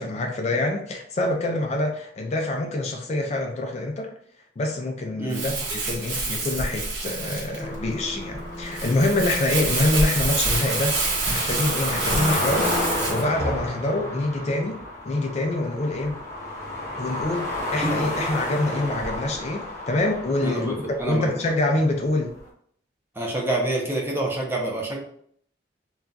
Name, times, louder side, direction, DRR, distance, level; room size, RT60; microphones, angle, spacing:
voice 1, 0.0-4.1 4.6-16.2 17.0-22.3, left 2 dB, 40° left, 2 dB, 0.4 m, -26 dB
Crumpling crinkling, 5.3-13.2, right 3 dB, 85° right, 0.9 m, -27 dB
sound 1, 7.6-21.7 22.4-22.5, left 1 dB, 20° left, 0.9 m, -31 dB
voice 2, 20.4-21.3 23.1-25.0, right 1 dB, 15° right, -1 dB, 0.6 m, -27 dB
2.3 x 2.2 x 3.8 m, 0.64 s
head